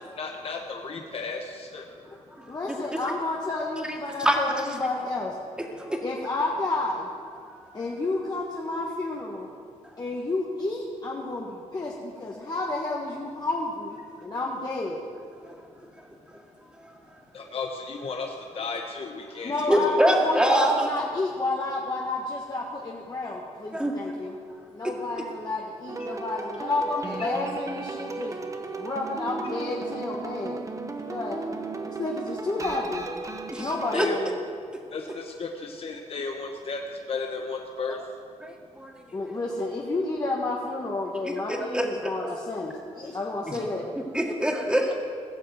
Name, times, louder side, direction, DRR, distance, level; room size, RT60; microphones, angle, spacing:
voice 1, 0.2-1.9 17.3-20.0 26.0-26.1 33.9-34.2 34.9-38.0, left 4 dB, 50° left, 2 dB, 1.1 m, -34 dB
voice 2, 2.5-5.4 6.0-7.1 7.7-9.5 10.0-15.0 19.4-24.3 24.7-30.6 31.1-31.4 31.7-33.1 33.6-34.4 39.1-44.1, left 2 dB, 30° left, -3 dB, 1.5 m, -31 dB
voice 3, 19.7-20.9 23.7-23.9 33.5-34.1 38.4-39.3 41.5-42.3 43.5-43.6 44.1-44.9, right 1 dB, 5° right, 0 dB, 2.1 m, -25 dB
sound 1, 25.9-34.0, right 3 dB, 25° right, 1.0 m, -35 dB
17.0 x 6.6 x 7.9 m, 2.2 s
cardioid pair, 100°, 13 cm